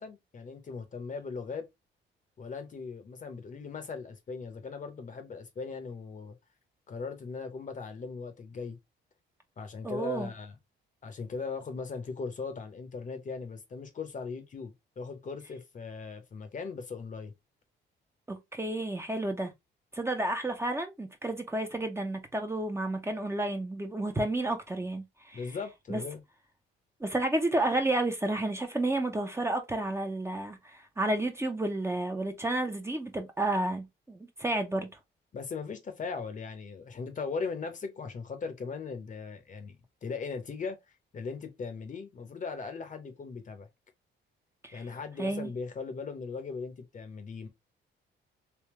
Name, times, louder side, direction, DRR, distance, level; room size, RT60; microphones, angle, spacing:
voice 1, 0.0-1.7 2.4-6.3 6.9-8.8 9.6-10.5 11.0-17.3 25.3-26.2 35.3-39.8 40.0-40.8 41.1-43.7 44.7-47.5, left 4 dB, 40° left, 0.9 m, -39 dB
voice 2, 9.8-10.3 18.3-19.5 19.9-25.4 25.9-26.0 27.0-34.9 44.6-44.8 45.2-45.5, right 2 dB, 15° right, 0.7 m, -31 dB
3.5 x 2.7 x 3.0 m
cardioid pair, 90°, 20 cm